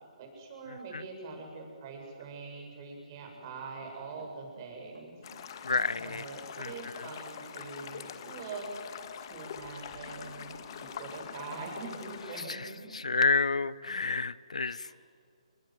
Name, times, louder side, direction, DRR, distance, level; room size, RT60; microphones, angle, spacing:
voice 1, 0.2-5.2 5.5-8.7 9.2-13.0 14.8-15.0, right 4 dB, 30° right, 2 dB, 7.9 m, -44 dB
Run, 3.3-12.6 12.9-13.0 13.3-13.4, right 1 dB, 80° right, 7.1 m, -55 dB
sound 1, 5.2-12.4, left 8 dB, 40° left, 2.1 m, -44 dB
voice 2, 5.6-6.2 6.6-6.7 12.5-12.7 12.9-14.9, left 4 dB, 70° left, 19 dB, 0.8 m, -29 dB
29.5 x 21.5 x 7.8 m, 2.4 s
figure-of-eight pair, 135°, 4 cm